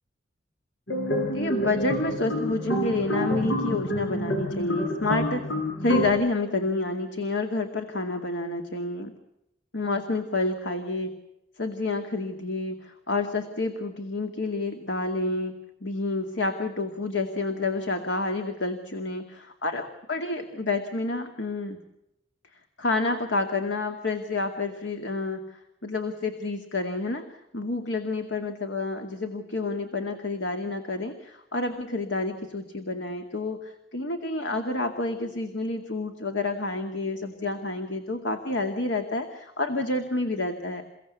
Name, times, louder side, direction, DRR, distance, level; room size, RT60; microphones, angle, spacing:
sound 1, 0.9-6.1, equal, 90° left, 6.8 m, -28 dB
voice 1, 1.3-5.5 5.8-9.1 9.7-11.1 11.6-15.5 15.8-21.8 22.8-27.2 27.5-40.8, left 2 dB, 65° left, 5 dB, 2.2 m, -29 dB
29.5 x 17.0 x 8.3 m, 0.86 s
head